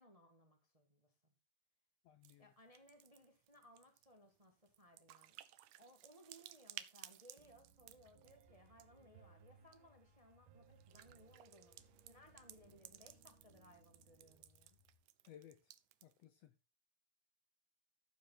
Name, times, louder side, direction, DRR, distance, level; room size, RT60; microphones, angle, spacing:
voice 1, 0.0-1.3 2.4-5.4 5.8-11.8 12.1-14.8, equal, 15° right, 1.4 m, -64 dB
voice 2, 2.0-2.5 15.2-15.7 16.0-16.5, left 10 dB, 70° left, 1.7 m, -60 dB
sound 1, 2.2-2.4 2.6-9.0 9.5-9.8 10.6-16.2, right 14 dB, 80° right, 2.2 m, -58 dB
Piano, 7.4-14.4, right 7 dB, 60° right, 1.4 m, -68 dB
sound 2, 7.7-15.0, left 7 dB, 85° left, 4.0 m, -73 dB
14.0 x 7.0 x 3.8 m
omnidirectional pair, 3.5 m